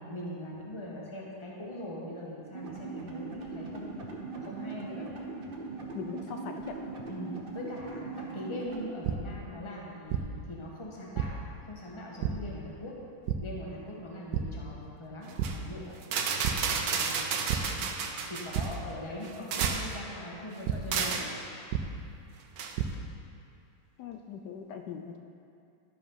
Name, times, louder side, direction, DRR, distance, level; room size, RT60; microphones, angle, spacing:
voice 1, 0.0-4.1 4.4-5.1 7.1-13.0 13.4-16.0 16.7-17.6 18.2-21.3, left 1 dB, 20° left, -4 dB, 1.3 m, -41 dB
sound 1, 2.5-8.9, right 3 dB, 40° right, 0.9 m, -40 dB
voice 2, 5.9-6.8 17.8-17.9 24.0-25.2, left 7 dB, 80° left, 4 dB, 1.2 m, -40 dB
sound 2, 9.0-9.1 10.1-10.2 11.2-11.3 12.2-12.3 13.3-13.4 14.3-14.4 14.9-15.1 15.4-15.5 16.4-16.5 17.5-17.6 18.5-18.6 19.6-19.7 20.7-20.8 21.7-21.8 22.5-22.9, right 12 dB, 90° right, 1.3 m, -29 dB
sound 3, 15.3-15.6 16.0-18.8 19.2-20.0 20.9-21.3 22.6-22.7, right 5 dB, 65° right, 1.1 m, -31 dB
12.0 x 5.1 x 5.6 m, 2.5 s
omnidirectional pair, 1.8 m